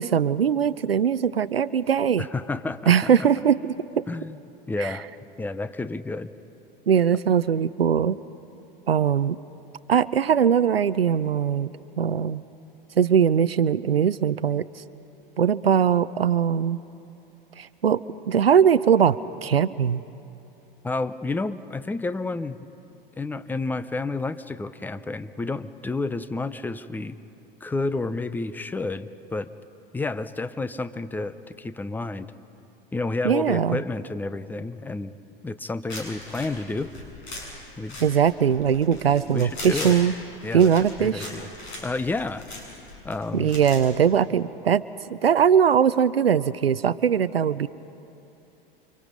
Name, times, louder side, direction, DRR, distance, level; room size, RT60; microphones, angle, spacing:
voice 1, 0.0-2.3 2.9-3.6 4.0-4.1 4.8-4.9 6.9-8.2 8.9-9.4 9.9-11.7 12.0-12.4 13.0-14.7 15.4-16.8 17.6-20.0 33.2-33.8 38.0-40.1 40.5-41.3 43.3-44.8 45.1-47.7, right 8 dB, 85° right, 15 dB, 0.6 m, -21 dB
voice 2, 2.2-2.9 3.2-3.3 4.1-4.4 4.7-5.1 5.4-6.3 20.8-22.7 23.2-27.2 27.6-29.5 29.9-32.3 32.9-35.2 35.4-36.9 37.8-38.0 39.3-40.0 40.4-40.7 41.0-41.5 41.8-42.4 43.0-43.5, left 3 dB, 5° left, 13 dB, 0.7 m, -30 dB
sound 1, 35.9-43.9, left 2 dB, 45° left, 7.8 m, -39 dB
29.5 x 25.5 x 5.3 m, 2.8 s
figure-of-eight pair, 95°, 29 cm